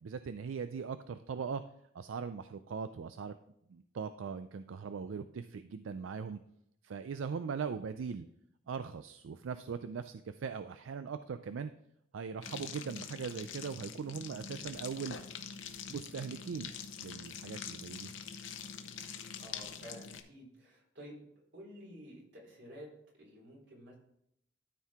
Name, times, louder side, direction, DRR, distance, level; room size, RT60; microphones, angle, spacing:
voice 1, 0.0-1.6 1.9-3.3 3.7-6.4 6.8-8.3 8.7-11.7 12.1-15.2 15.9-16.7 17.0-18.1, right 6 dB, 85° right, 11 dB, 0.4 m, -40 dB
sound 1, 12.4-20.2, left 7 dB, 70° left, 0.8 m, -45 dB
voice 2, 19.4-21.2 21.5-22.9 23.2-23.9, equal, 65° right, -3 dB, 3.6 m, -51 dB
13.0 x 4.6 x 3.6 m, 0.75 s
head